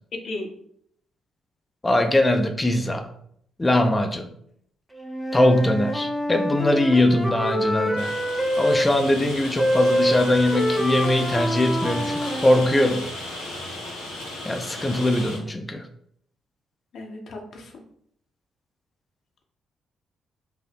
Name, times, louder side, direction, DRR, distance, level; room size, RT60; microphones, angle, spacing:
voice 1, 0.1-0.5 16.9-17.8, left 2 dB, 50° left, 2 dB, 0.8 m, -35 dB
voice 2, 1.8-3.1 3.6-4.3 5.3-8.1 8.6-13.1 14.4-15.8, left 1 dB, 15° left, 6 dB, 0.6 m, -21 dB
Wind instrument woodwind instrument, 4.9-8.9 9.5-13.1, equal, 10° right, 0.9 m, -26 dB
Rain, 8.0-15.4, left 1 dB, 85° left, 1.1 m, -35 dB
5.1 x 2.1 x 4.4 m, 0.68 s
figure-of-eight pair, 40°, 0 cm